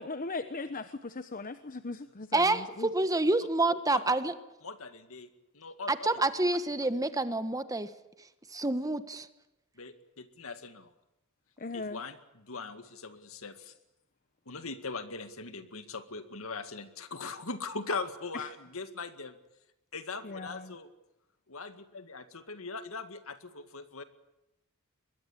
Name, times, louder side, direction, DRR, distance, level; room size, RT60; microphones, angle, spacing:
voice 1, 0.0-2.4 2.8-2.9 11.6-12.0 20.2-20.6, left 3 dB, 40° left, 10 dB, 1.0 m, -38 dB
voice 2, 2.3-4.3 5.9-7.9 8.5-9.3, right 2 dB, 15° right, 11 dB, 1.2 m, -28 dB
voice 3, 4.6-5.3 5.5-6.1 9.8-10.9 11.7-13.7 14.5-19.4 19.9-20.9 21.5-24.0, left 4 dB, 75° left, 10 dB, 2.0 m, -40 dB
25.0 x 21.5 x 8.6 m, 0.91 s
head